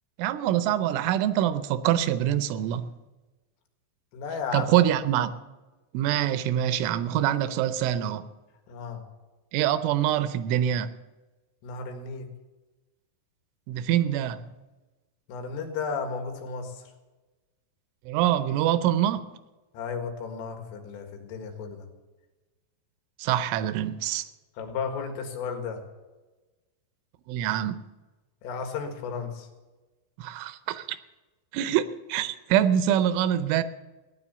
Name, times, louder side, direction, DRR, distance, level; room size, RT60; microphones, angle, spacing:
voice 1, 0.2-2.9 4.5-5.3 5.9-8.2 9.5-10.9 13.7-14.4 18.1-19.3 23.2-24.3 27.3-27.8 30.2-31.0 31.5-33.6, right 11 dB, 85° right, 13 dB, 3.2 m, -25 dB
voice 2, 4.1-4.8 8.7-9.0 11.6-12.3 15.3-16.8 19.7-21.9 24.6-25.8 28.4-29.5, left 5 dB, 90° left, 4 dB, 4.4 m, -34 dB
17.0 x 10.5 x 6.9 m, 1.2 s
omnidirectional pair, 5.6 m